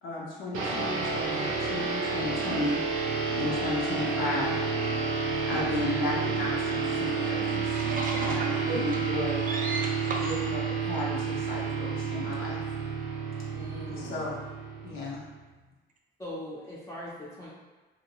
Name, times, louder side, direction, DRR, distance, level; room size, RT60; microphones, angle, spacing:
voice 1, 0.0-2.8 3.3-4.5 5.5-7.8 8.2-9.4 10.2-12.6 13.9-14.5 14.8-15.2, left 2 dB, 80° left, -4 dB, 0.6 m, -34 dB
sound 1, 0.5-15.4, right 5 dB, 90° right, 0.5 m, -30 dB
voice 2, 7.0-10.4, right 3 dB, 40° right, 0 dB, 0.5 m, -36 dB
voice 3, 13.5-14.3 16.2-17.5, left 1 dB, 15° left, -7 dB, 0.5 m, -41 dB
2.7 x 2.2 x 2.9 m, 1.2 s
cardioid pair, 90°, 20 cm